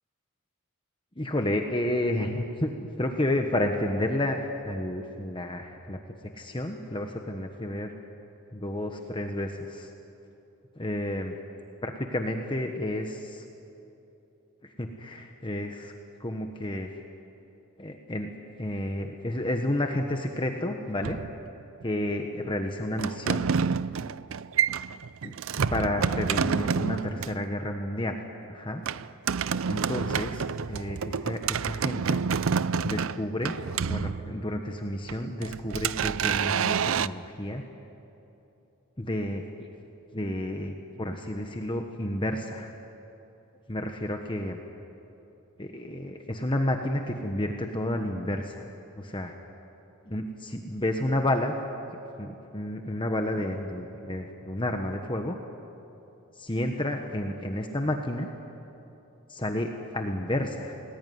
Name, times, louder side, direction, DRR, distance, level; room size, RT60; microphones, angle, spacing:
voice 1, 1.2-6.0 6.3-7.9 8.5-9.9 10.8-11.4 11.8-13.4 14.6-15.9 16.2-16.9 17.8-18.3 18.6-21.2 21.8-23.5 25.2-25.3 25.7-28.2 28.5-28.8 29.7-32.2 32.8-33.6 33.9-37.6 39.0-39.7 40.1-42.7 43.7-44.6 45.6-48.6 49.0-49.3 50.1-51.6 52.2-55.4 56.3-58.3 59.3-60.8, left 1 dB, 20° left, 4 dB, 1.2 m, -31 dB
sound 1, 21.0-21.8 23.0-27.4 28.9-34.6 35.1-37.1, right 6 dB, 65° right, 0.5 m, -28 dB
29.5 x 19.5 x 9.5 m, 3.0 s
head